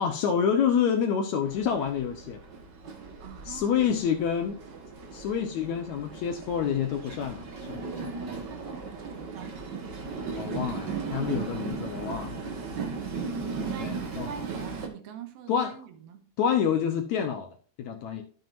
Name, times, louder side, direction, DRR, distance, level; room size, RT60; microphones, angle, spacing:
voice 1, 0.0-2.4 3.5-4.6 5.1-8.5 10.4-12.4 13.8-14.3 15.5-15.7 16.4-17.5 17.8-18.2, left 7 dB, 70° left, 1.9 m, -28 dB
Train, 1.4-14.9, right 4 dB, 55° right, 1.2 m, -37 dB
voice 2, 3.2-3.8 8.4-9.8 13.7-16.3, right 7 dB, 90° right, 3.2 m, -44 dB
12.0 x 7.1 x 2.6 m
omnidirectional pair, 4.2 m